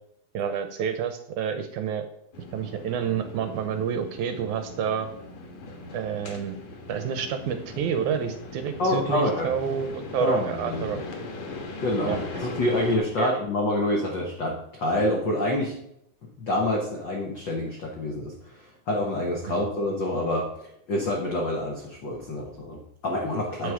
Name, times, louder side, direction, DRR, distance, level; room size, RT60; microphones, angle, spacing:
voice 1, 0.3-2.1 2.5-5.1 5.9-6.6 6.9-11.0 12.1-12.2 13.2-13.4 19.5-19.6 23.6-23.7, right 7 dB, 75° right, 8 dB, 1.9 m, -29 dB
sound 1, 2.3-13.0, left 2 dB, 60° left, 2.1 m, -39 dB
voice 2, 8.8-9.5 10.2-11.0 11.8-15.7 16.2-20.5 20.9-23.7, left 1 dB, 85° left, 0 dB, 1.0 m, -27 dB
7.7 x 6.8 x 4.8 m, 0.77 s
omnidirectional pair, 3.9 m